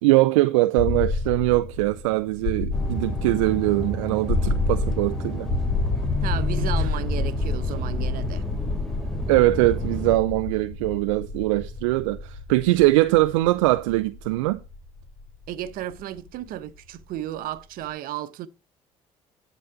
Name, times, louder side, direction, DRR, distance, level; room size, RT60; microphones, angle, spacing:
voice 1, 0.0-5.5 6.8-6.9 9.3-14.6, right 19 dB, 80° right, 0.4 m, -22 dB
sound 1, 0.8-16.6, left 3 dB, 60° left, 2.5 m, -29 dB
sound 2, 2.7-10.2, left 1 dB, ahead, 2.9 m, -32 dB
voice 2, 6.2-8.4 15.5-18.5, right 13 dB, 65° right, 1.0 m, -33 dB
11.0 x 4.0 x 5.7 m
hypercardioid pair, 60°, 16 cm